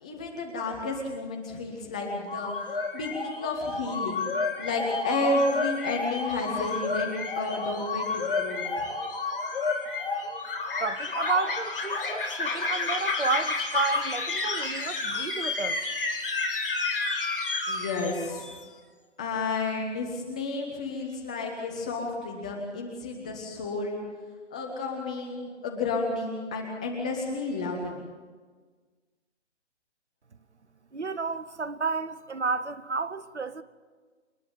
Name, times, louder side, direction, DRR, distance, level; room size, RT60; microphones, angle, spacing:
voice 1, 0.0-8.9 17.7-18.6 19.2-24.0 24.5-28.1, left 3 dB, 5° left, 0.6 m, -31 dB
sound 1, 2.0-18.6, left 3 dB, 50° left, 2.9 m, -31 dB
voice 2, 10.8-15.8 30.9-33.6, right 4 dB, 70° right, 1.2 m, -31 dB
27.5 x 10.5 x 9.1 m
figure-of-eight pair, 140°, 36 cm